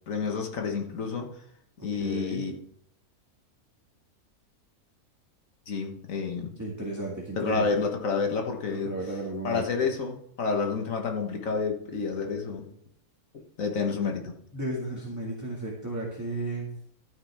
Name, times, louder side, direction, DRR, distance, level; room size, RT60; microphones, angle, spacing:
voice 1, 0.1-1.3 1.8-2.5 5.7-6.5 7.4-8.9 9.4-12.7 13.3-14.3, left 5 dB, 60° left, 2 dB, 1.8 m, -29 dB
voice 2, 2.0-2.5 6.6-7.8 8.7-9.6 14.5-16.7, right 2 dB, 10° right, -4 dB, 1.9 m, -34 dB
13.0 x 9.4 x 3.5 m, 0.71 s
omnidirectional pair, 1.6 m